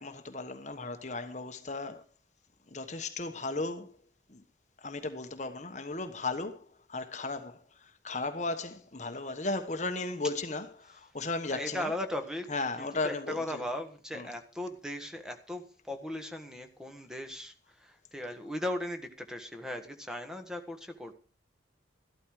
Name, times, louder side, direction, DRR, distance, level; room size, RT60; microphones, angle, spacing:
voice 1, 0.0-2.0 2.7-3.9 4.3-4.4 4.8-11.9 12.5-13.6 14.1-14.3, left 3 dB, 40° left, 1.2 m, -36 dB
voice 2, 11.4-21.1, left 1 dB, 5° right, 1.6 m, -38 dB
13.5 x 12.5 x 4.8 m
head